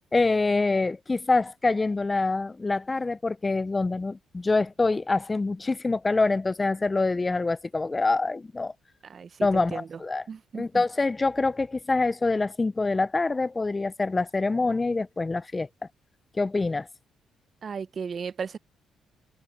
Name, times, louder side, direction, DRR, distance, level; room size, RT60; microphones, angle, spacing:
voice 1, 0.1-8.7 9.4-10.2 10.5-15.7 16.4-16.9, left 3 dB, 25° left, 0.3 m, -25 dB
voice 2, 9.0-10.0 10.3-10.8 17.6-18.6, right 6 dB, 45° right, 0.7 m, -36 dB
cardioid pair, 90°, 0 cm